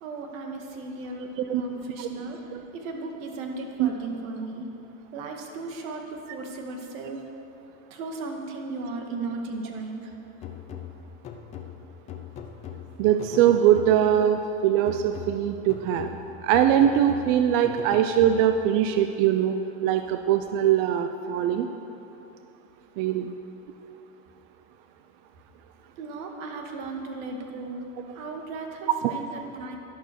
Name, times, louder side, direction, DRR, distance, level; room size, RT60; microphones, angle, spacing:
voice 1, 0.0-2.4 2.7-4.7 5.1-7.2 7.9-10.1 26.0-27.8 28.1-29.8, right 3 dB, 75° right, 2 dB, 2.1 m, -36 dB
voice 2, 1.2-1.6 2.0-2.1 2.5-2.6 3.8-3.9 13.0-16.1 16.4-19.5 19.8-21.7 23.0-23.3 29.0-29.1, right 10 dB, 45° right, 7 dB, 0.5 m, -22 dB
sound 1, 10.4-14.3 14.9-18.7, left 8 dB, 20° left, 0.4 m, -41 dB
11.5 x 11.5 x 6.4 m, 2.7 s
supercardioid pair, 165°, 41 cm